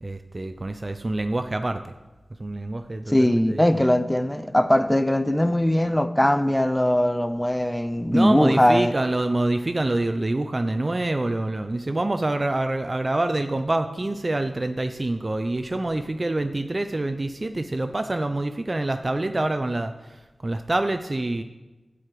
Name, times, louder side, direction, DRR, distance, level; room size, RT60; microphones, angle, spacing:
voice 1, 0.0-1.8 2.4-3.8 8.1-21.4, right 2 dB, 40° right, 8 dB, 0.6 m, -26 dB
voice 2, 3.1-8.9, left 1 dB, 15° left, 12 dB, 0.6 m, -20 dB
10.5 x 4.9 x 7.6 m, 1.2 s
cardioid pair, 40°, 0 cm